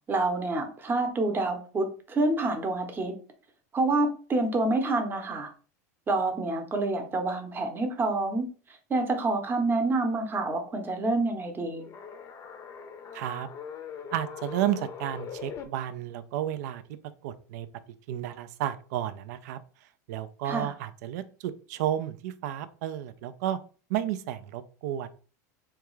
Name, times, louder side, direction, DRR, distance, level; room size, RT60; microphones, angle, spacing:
voice 1, 0.1-3.1 3.7-5.5 6.1-8.5 8.9-11.9 20.4-20.7, right 2 dB, 20° right, 5 dB, 0.8 m, -27 dB
sound 1, 11.8-15.6, left 7 dB, 35° left, 0.6 m, -41 dB
voice 2, 13.1-13.5 14.1-16.8 17.2-17.7 18.1-23.6 23.9-25.1, right 11 dB, 70° right, 13 dB, 0.4 m, -32 dB
3.5 x 2.3 x 3.1 m, 0.39 s
supercardioid pair, 110°, 9 cm